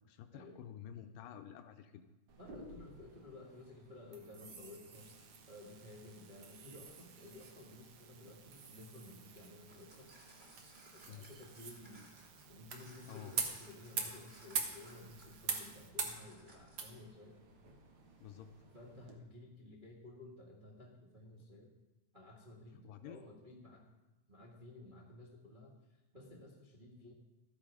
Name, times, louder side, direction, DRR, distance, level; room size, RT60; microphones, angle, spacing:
voice 1, 0.1-2.0 11.1-11.3 13.1-13.4 18.2-18.5 22.8-23.2, left 9 dB, 80° left, 8 dB, 2.2 m, -50 dB
sound 1, 2.3-19.2, right 5 dB, 60° right, 1.4 m, -46 dB
voice 2, 2.4-5.1 5.5-10.3 10.9-12.1 12.5-17.4 18.7-21.7 22.1-23.8 24.3-27.1, left 2 dB, 40° right, -3 dB, 0.6 m, -54 dB
sound 2, 4.9-15.9, right 7 dB, 80° right, 3.2 m, -63 dB
sound 3, 9.7-16.9, right 1 dB, 20° right, 2.4 m, -61 dB
14.0 x 10.5 x 4.9 m, 1.1 s
omnidirectional pair, 4.3 m